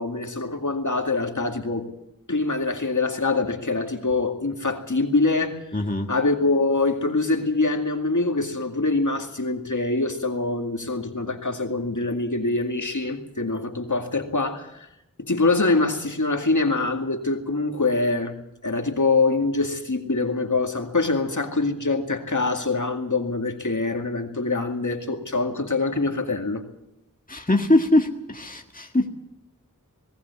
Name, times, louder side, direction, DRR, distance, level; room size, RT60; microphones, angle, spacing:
voice 1, 0.0-1.9 2.3-5.8 6.1-14.9 15.2-18.4 18.6-26.6, left 3 dB, 60° left, 4 dB, 2.2 m, -24 dB
voice 2, 5.7-6.1 27.3-29.1, left 1 dB, 25° left, 3 dB, 1.8 m, -22 dB
19.0 x 17.5 x 8.3 m, 0.84 s
wide cardioid pair, 45°, 33 cm